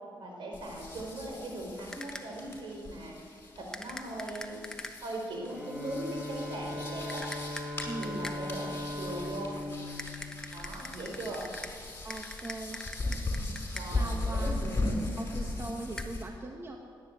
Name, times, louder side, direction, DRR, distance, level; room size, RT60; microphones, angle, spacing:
voice 1, 0.2-3.2 3.5-4.6 5.0-7.2 8.0-9.6 10.5-11.4 13.7-14.8, right 1 dB, 70° right, 0 dB, 4.7 m, -39 dB
sound 1, 0.5-16.2, left 2 dB, 25° left, 5.2 m, -38 dB
sound 2, 1.9-2.5 3.7-5.2 7.1-8.6 10.0-14.1 16.0-16.1, left 1 dB, 5° left, 1.2 m, -44 dB
Bowed string instrument, 5.4-11.1, left 1 dB, 10° right, 3.6 m, -39 dB
voice 2, 7.8-8.3 12.0-12.8 13.8-14.6 15.2-16.8, right 2 dB, 30° right, 2 dB, 1.5 m, -40 dB
19.0 x 9.7 x 7.8 m, 2.4 s
cardioid pair, 75°, 9 cm